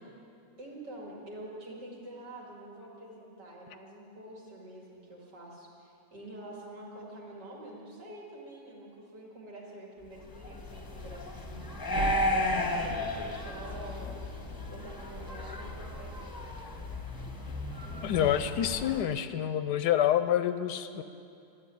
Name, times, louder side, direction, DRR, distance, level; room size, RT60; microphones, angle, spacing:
voice 1, 0.6-11.9 12.2-14.2 14.7-16.1, right 1 dB, 70° right, -3 dB, 3.1 m, -46 dB
sound 1, 10.2-19.0, left 1 dB, 15° left, 0.9 m, -34 dB
sound 2, 11.9-16.6, right 2 dB, 55° right, 0.9 m, -42 dB
voice 2, 18.0-21.0, left 10 dB, 75° left, 11 dB, 1.1 m, -27 dB
12.5 x 8.7 x 10.0 m, 2.5 s
omnidirectional pair, 1.9 m